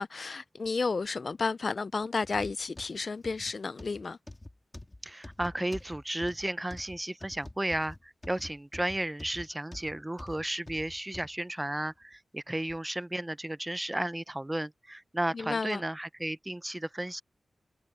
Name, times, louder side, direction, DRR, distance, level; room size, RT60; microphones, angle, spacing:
voice 1, 0.0-4.2 15.3-15.8, left 4 dB, 50° left, 0.4 m, -32 dB
sound 1, 2.2-11.3 11.9-12.0 12.7-12.8, left 2 dB, 20° left, 3.4 m, -46 dB
voice 2, 5.0-17.2, right 1 dB, 15° right, 0.5 m, -34 dB
wide cardioid pair, 125°, 0 cm